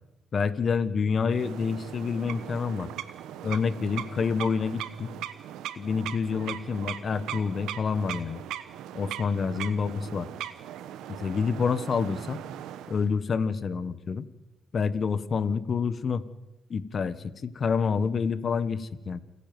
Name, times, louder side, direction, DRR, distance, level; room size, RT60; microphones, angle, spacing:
voice 1, 0.3-2.9 3.4-5.1 5.8-8.4 8.9-10.3 11.1-12.4 12.9-14.3 14.7-16.2 16.7-19.2, left 5 dB, 50° left, 14 dB, 1.4 m, -28 dB
sound 1, 1.3-13.1, right 11 dB, 90° right, 1.1 m, -39 dB
29.0 x 10.0 x 9.3 m, 0.99 s
cardioid pair, 70°, 0 cm